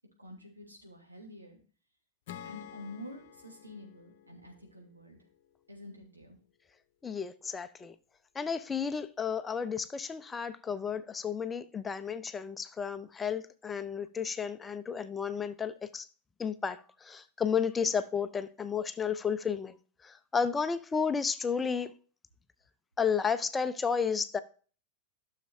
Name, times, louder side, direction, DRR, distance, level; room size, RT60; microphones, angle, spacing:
voice 1, 0.2-1.6 2.4-5.2 5.7-6.4, left 1 dB, 80° right, 2.9 m, -48 dB
Acoustic guitar / Strum, 2.3-5.7, left 10 dB, 50° left, 0.8 m, -51 dB
voice 2, 7.0-7.9 8.3-16.1 16.4-19.8 20.0-21.9 23.0-24.4, left 6 dB, 15° left, 0.5 m, -32 dB
13.0 x 6.6 x 2.7 m
figure-of-eight pair, 90°, 0 cm